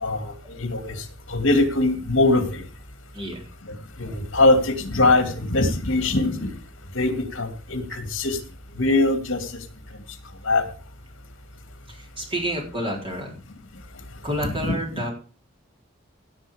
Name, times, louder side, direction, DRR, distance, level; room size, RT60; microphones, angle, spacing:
voice 1, 0.0-1.0 1.3-2.6 4.0-6.5 6.9-8.4 8.8-9.5 10.5-10.6 14.4-14.8, left 2 dB, 70° left, 8 dB, 2.4 m, -22 dB
voice 2, 11.9-13.3 14.2-15.1, equal, 25° right, 0 dB, 4.0 m, -29 dB
16.5 x 7.3 x 5.1 m, 0.37 s
head